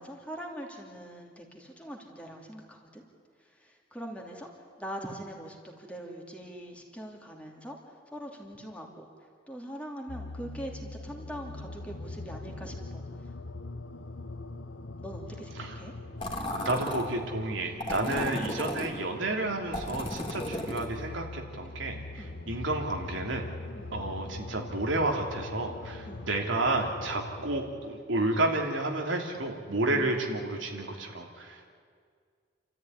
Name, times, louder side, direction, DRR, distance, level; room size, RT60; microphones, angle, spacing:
voice 1, 0.0-3.0 3.4-4.5 4.8-9.0 9.5-13.3 15.0-15.9 18.0-18.9 22.2-22.4 23.7-24.0 26.0-26.4 29.9-30.2, equal, 5° left, 0 dB, 2.8 m, -43 dB
sound 1, 10.1-27.9, left 2 dB, 75° left, 1.2 m, -43 dB
sound 2, 16.2-17.1 17.8-18.9 19.7-20.9, left 1 dB, 25° left, 3.3 m, -34 dB
voice 2, 16.5-23.5 23.9-31.7, right 2 dB, 85° right, 2 dB, 3.0 m, -31 dB
29.0 x 13.5 x 9.9 m, 2.1 s
head